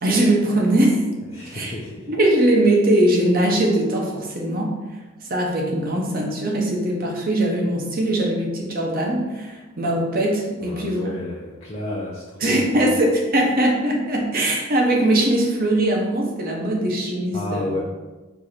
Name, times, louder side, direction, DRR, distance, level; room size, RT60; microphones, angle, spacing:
voice 1, 0.0-1.0 1.4-1.7 2.1-4.7 5.2-11.0 12.4-17.7, right 1 dB, 45° right, -1 dB, 0.8 m, -21 dB
voice 2, 1.3-2.1 10.6-12.9 17.3-17.8, left 1 dB, 30° left, -4 dB, 0.5 m, -31 dB
4.7 x 2.6 x 4.2 m, 1.2 s
head